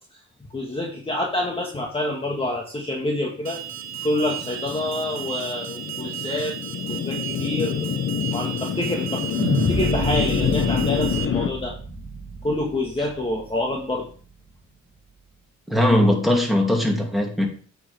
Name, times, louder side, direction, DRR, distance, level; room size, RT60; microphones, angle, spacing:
voice 1, 0.5-3.6 4.0-6.6 6.9-7.9 8.3-9.2 9.5-11.7 12.4-14.0, left 1 dB, 20° left, 1.7 m, -27 dB
Alarm, 3.4-11.2, right 12 dB, 60° right, 1.0 m, -35 dB
sound 1, 3.8-11.5, left 8 dB, 50° left, 1.1 m, -27 dB
sound 2, 9.4-13.7, right 2 dB, 20° right, 2.4 m, -29 dB
voice 2, 15.7-17.5, left 1 dB, ahead, 2.7 m, -19 dB
8.5 x 6.6 x 3.5 m
cardioid pair, 90°, 30 cm